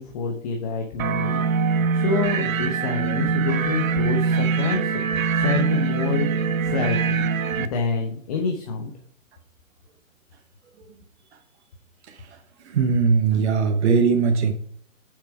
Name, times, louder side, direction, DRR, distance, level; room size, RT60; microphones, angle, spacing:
voice 1, 0.0-7.3 7.6-8.9, left 4 dB, 30° left, 3 dB, 0.9 m, -28 dB
sound 1, 1.0-7.7, right 5 dB, 80° right, 0.8 m, -23 dB
voice 2, 12.1-12.4 12.7-14.5, right 5 dB, 55° right, 4 dB, 1.1 m, -20 dB
6.9 x 6.7 x 4.8 m, 0.63 s
hypercardioid pair, 155°, 40 cm